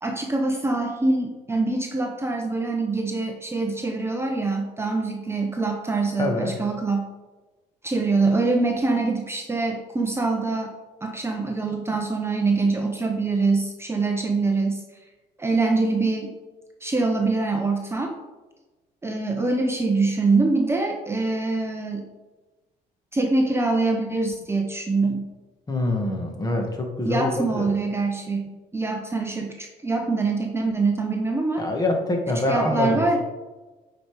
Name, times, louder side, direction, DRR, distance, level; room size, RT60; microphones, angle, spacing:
voice 1, 0.0-7.0 7.8-10.7 11.0-14.8 15.4-16.3 16.8-18.1 19.0-22.0 23.1-25.3 27.0-31.7 32.5-33.2, right 3 dB, 15° right, 2 dB, 0.8 m, -24 dB
voice 2, 6.2-6.5 25.7-27.7 31.6-33.2, left 2 dB, 20° left, 3 dB, 1.6 m, -25 dB
8.5 x 5.2 x 4.7 m, 1.2 s
cardioid pair, 110°, 17 cm